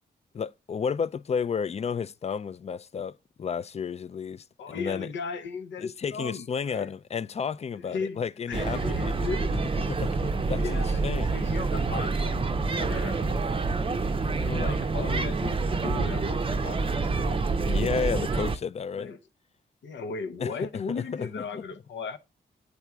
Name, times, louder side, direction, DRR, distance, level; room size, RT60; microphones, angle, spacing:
voice 1, 0.3-3.1 3.4-5.1 5.8-9.2 9.9-11.3 17.7-19.1 20.4-21.6, left 6 dB, 35° left, 0.4 m, -32 dB
voice 2, 4.6-6.9 7.8-9.5 10.5-12.4 12.7-13.6 14.4-17.5 18.9-19.2 19.8-22.2, left 5 dB, 80° left, 0.7 m, -37 dB
sound 1, 8.5-18.6, right 3 dB, 30° right, 0.6 m, -27 dB
8.2 x 3.6 x 4.5 m
cardioid pair, 65°, 19 cm